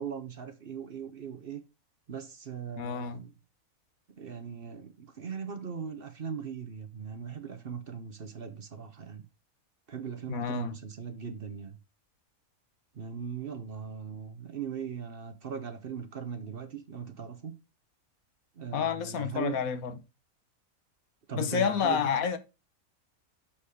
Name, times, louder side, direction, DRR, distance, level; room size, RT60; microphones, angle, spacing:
voice 1, 0.0-1.6 2.1-3.3 4.2-9.2 9.9-11.8 12.9-17.6 18.5-19.6 21.3-22.0, right 7 dB, 45° right, 0.9 m, -39 dB
voice 2, 2.8-3.2 10.3-10.7 18.7-20.0 21.3-22.4, left 7 dB, 80° left, 1.4 m, -29 dB
6.4 x 5.8 x 4.8 m
omnidirectional pair, 1.5 m